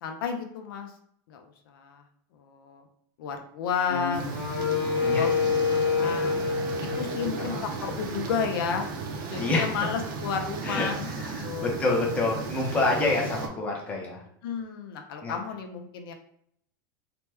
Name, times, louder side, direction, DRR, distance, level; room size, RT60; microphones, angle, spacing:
voice 1, 0.0-0.9 1.3-2.0 2.3-2.8 3.2-4.3 4.7-6.4 6.8-8.9 9.3-11.1 11.4-11.9 14.4-16.1, left 6 dB, 75° left, 4 dB, 0.5 m, -32 dB
Wind instrument woodwind instrument, 3.9-8.1, left 5 dB, 60° left, 0.9 m, -28 dB
sound 1, 4.1-13.5, right 4 dB, 65° right, 0.5 m, -35 dB
voice 2, 4.8-5.3 6.0-6.2 7.4-7.7 9.4-9.7 10.6-14.2 15.2-15.3, left 2 dB, 10° left, -2 dB, 0.6 m, -28 dB
2.9 x 2.2 x 3.3 m, 0.69 s
supercardioid pair, 160°, 12 cm